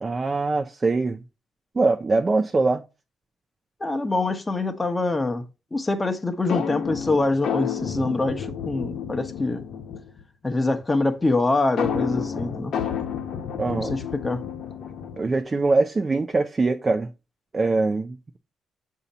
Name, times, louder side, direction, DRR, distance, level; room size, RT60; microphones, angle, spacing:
voice 1, 0.0-1.2 1.8-2.8 13.6-13.9 15.2-17.1 17.5-18.4, right 3 dB, 30° right, 0.5 m, -23 dB
voice 2, 3.8-5.4 5.7-9.6 10.4-12.7 13.7-14.4, left 2 dB, 20° left, 0.9 m, -24 dB
sound 1, 6.5-10.2 11.8-15.4, left 7 dB, 70° left, 0.9 m, -30 dB
7.0 x 2.8 x 5.4 m
cardioid pair, 90°, 0 cm